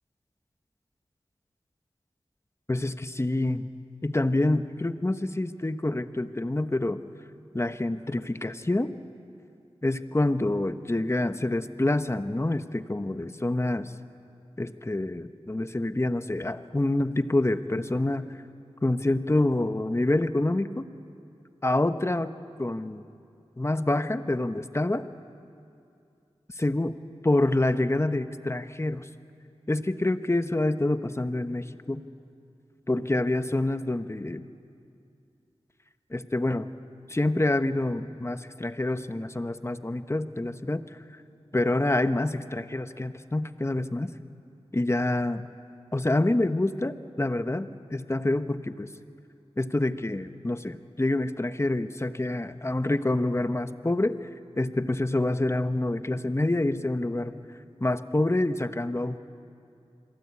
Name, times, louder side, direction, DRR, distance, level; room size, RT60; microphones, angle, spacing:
voice 1, 2.7-3.7 4.0-7.0 7.5-8.9 9.8-13.9 14.6-18.3 18.8-20.9 21.6-22.3 22.6-23.0 23.6-25.1 26.6-27.0 27.2-29.1 29.7-32.0 32.9-34.4 36.1-36.7 37.1-40.8 41.5-44.1 44.7-45.4 45.9-48.9 49.6-54.3 54.6-57.4 57.8-59.2, left 2 dB, 25° left, 10 dB, 1.1 m, -27 dB
26.5 x 22.0 x 8.5 m, 2.5 s
wide cardioid pair, 45°, 11 cm